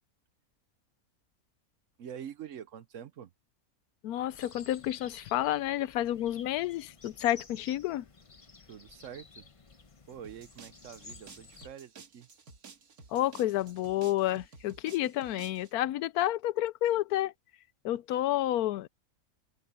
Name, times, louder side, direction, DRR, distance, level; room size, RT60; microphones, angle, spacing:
voice 1, 2.0-3.3 8.7-9.4 10.1-12.3, right 9 dB, 65° right, 1.0 m, -45 dB
voice 2, 4.0-8.1 13.1-17.3 17.8-18.9, left 13 dB, 85° left, 1.1 m, -30 dB
sound 1, 4.3-11.7, left 4 dB, 25° left, 0.9 m, -53 dB
sound 2, 10.2-15.7, right 5 dB, 80° right, 2.2 m, -53 dB
omnidirectional pair, 1.5 m